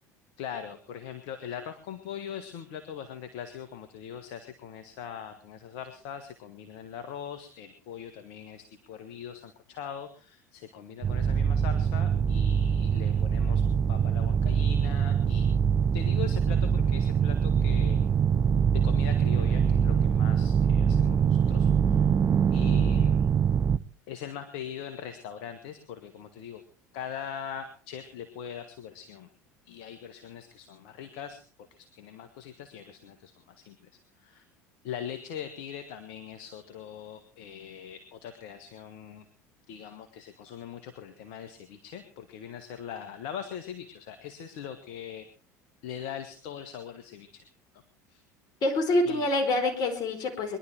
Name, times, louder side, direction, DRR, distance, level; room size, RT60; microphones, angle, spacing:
voice 1, 0.4-13.6 13.9-15.5 15.9-18.0 18.7-22.1 22.5-23.2 24.1-26.6 26.9-29.3 29.6-33.8 34.2-34.4 34.8-39.2 39.7-45.3 45.8-47.4 48.1-48.2 49.0-49.3, left 8 dB, 65° left, 8 dB, 1.7 m, -41 dB
sound 1, 11.0-23.8, right 7 dB, 35° right, 0.7 m, -24 dB
voice 2, 48.6-50.6, left 1 dB, 50° left, 6 dB, 4.6 m, -26 dB
22.0 x 11.5 x 4.6 m, 0.39 s
hypercardioid pair, 75°, 9 cm